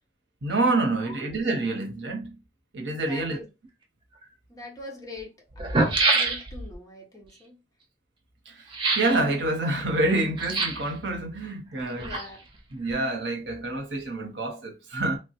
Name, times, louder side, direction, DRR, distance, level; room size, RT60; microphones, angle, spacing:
voice 1, 0.4-2.4 2.7-3.4 8.5-8.6 9.0-12.2 12.7-15.2, right 2 dB, 85° right, 0.9 m, -27 dB
voice 2, 3.0-3.5 4.5-5.3 5.7-7.6 11.8-12.4, left 2 dB, 20° left, 0.8 m, -43 dB
sound 1, 4.2-4.3 5.2-5.3 5.5-6.7 8.7-9.2 10.4-10.9 11.8-12.6 12.8-12.9, right 3 dB, 30° right, 0.5 m, -25 dB
3.1 x 2.2 x 2.8 m
head